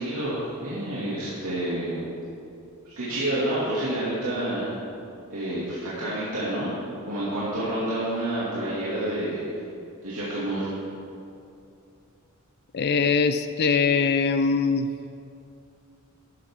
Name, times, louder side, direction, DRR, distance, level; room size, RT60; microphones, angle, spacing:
voice 1, 0.0-2.0 2.8-4.7 5.3-6.7 7.1-9.4 10.0-10.7, right 1 dB, 85° right, -9 dB, 2.4 m, -28 dB
voice 2, 12.7-14.9, left 5 dB, 50° left, 10 dB, 0.4 m, -22 dB
13.5 x 11.0 x 3.7 m, 2.6 s
head